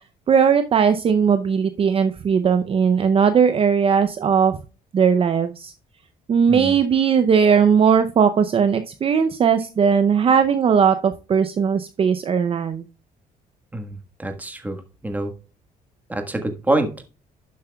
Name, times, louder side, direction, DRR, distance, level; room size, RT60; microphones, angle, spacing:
voice 1, 0.3-4.6 4.9-5.7 6.3-12.8, right 7 dB, 35° right, 9 dB, 0.6 m, -18 dB
voice 2, 13.7-14.8 15.0-15.3 16.1-16.9, right 2 dB, 10° right, 5 dB, 1.4 m, -25 dB
11.5 x 7.5 x 2.3 m, 0.33 s
cardioid pair, 125°, 16 cm